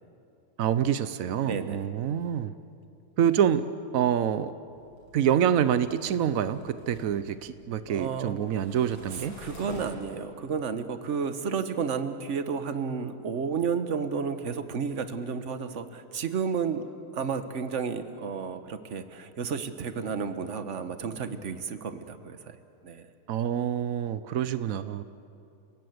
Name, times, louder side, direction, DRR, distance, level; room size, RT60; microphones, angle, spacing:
voice 1, 0.6-2.5 3.2-3.7 3.9-4.5 5.1-9.4 23.3-25.0, right 9 dB, 90° right, 13 dB, 0.7 m, -26 dB
voice 2, 1.4-1.9 7.9-8.4 9.1-16.8 17.1-22.6 22.8-23.1, right 6 dB, 45° right, 10 dB, 1.2 m, -32 dB
sound 1, 4.7-10.2, left 1 dB, 85° left, 7.0 m, -48 dB
30.0 x 18.0 x 8.0 m, 2.6 s
omnidirectional pair, 2.4 m